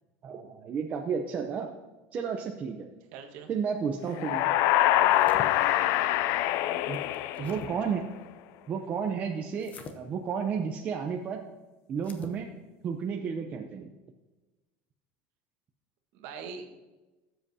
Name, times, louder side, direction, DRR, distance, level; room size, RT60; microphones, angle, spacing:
voice 1, 0.2-1.7 2.1-2.9 3.5-4.5 6.9-7.0 7.4-8.1 8.7-11.5 11.9-12.5 12.8-13.9, right 6 dB, 25° right, 2 dB, 0.6 m, -32 dB
voice 2, 3.1-3.5 7.4-8.0 16.1-16.8, right 5 dB, 60° right, 5 dB, 1.4 m, -43 dB
sound 1, 4.1-8.0, left 14 dB, 50° left, 0.4 m, -25 dB
sound 2, 4.9-5.5 6.9-7.7 9.6-10.0 12.0-12.4, left 4 dB, 25° left, 0.7 m, -44 dB
17.0 x 7.7 x 2.8 m, 1.1 s
cardioid pair, 170°, 6 cm